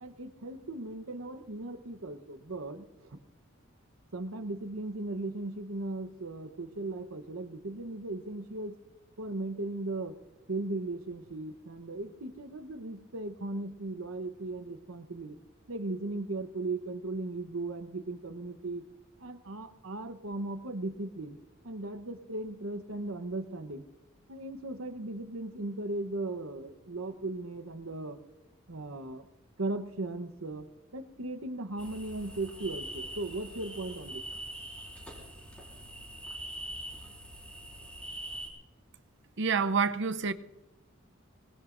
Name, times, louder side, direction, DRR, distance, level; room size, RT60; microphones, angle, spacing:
voice 1, 0.0-3.2 4.1-8.8 9.2-10.2 10.5-15.4 15.7-18.8 19.2-21.4 21.6-23.8 24.3-28.2 28.7-29.2 29.6-30.7 30.9-34.2, right 2 dB, 85° right, 1.0 m, -37 dB
sound 1, 31.8-38.5, right 1 dB, 5° left, 4.3 m, -43 dB
voice 2, 39.4-40.3, right 5 dB, 60° right, 0.7 m, -27 dB
25.0 x 20.0 x 2.6 m
head